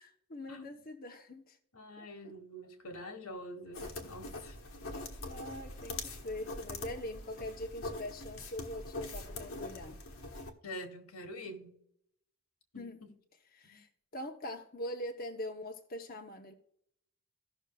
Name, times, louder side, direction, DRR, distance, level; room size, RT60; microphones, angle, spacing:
voice 1, 0.0-1.6 2.0-2.3 5.2-10.0 12.7-13.0 13.5-16.5, left 1 dB, 45° left, 0.9 m, -43 dB
voice 2, 1.7-4.6 10.6-11.7 12.7-13.1 13.7-13.8, equal, 85° left, 1.5 m, -46 dB
sound 1, 3.7-10.5, left 2 dB, 70° left, 1.3 m, -43 dB
16.5 x 6.2 x 2.3 m
head